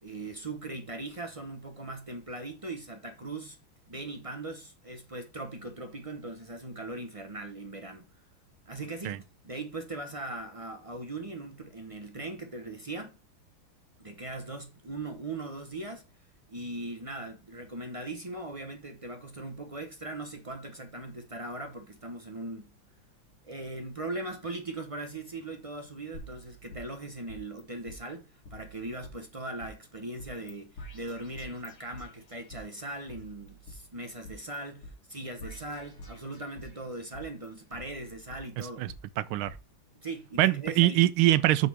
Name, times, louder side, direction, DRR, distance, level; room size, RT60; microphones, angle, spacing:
voice 1, 0.0-3.6 3.9-8.1 8.7-13.2 14.0-16.0 16.5-22.7 23.4-38.8 40.0-41.0, right 2 dB, 50° right, 0.3 m, -39 dB
sound 1, 26.1-27.6 27.9-28.0 28.5-29.7 30.2-30.5 30.8-32.6 33.1-34.6 34.8-34.9 35.4-36.8 37.1-39.0 39.5-39.6, equal, 80° left, 3.1 m, -48 dB
voice 2, 38.6-39.5 40.4-41.7, right 15 dB, 85° right, 1.4 m, -24 dB
7.7 x 4.1 x 6.1 m
omnidirectional pair, 2.2 m